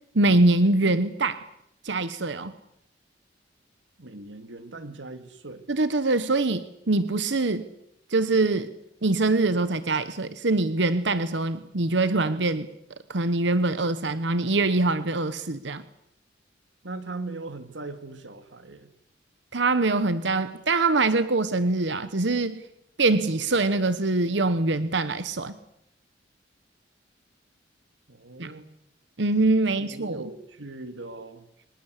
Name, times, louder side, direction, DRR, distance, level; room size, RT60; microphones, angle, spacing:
voice 1, 0.1-1.4 1.8-2.5 5.7-7.7 8.1-8.7 9.0-12.7 13.1-15.8 19.5-22.6 23.0-25.5 28.4-28.5 29.2-30.2, right 2 dB, 65° right, 13 dB, 1.1 m, -23 dB
voice 2, 4.0-5.7 16.8-18.9 28.1-28.7 29.8-31.5, right 2 dB, 85° right, 9 dB, 2.4 m, -39 dB
25.0 x 20.0 x 8.3 m, 0.80 s
head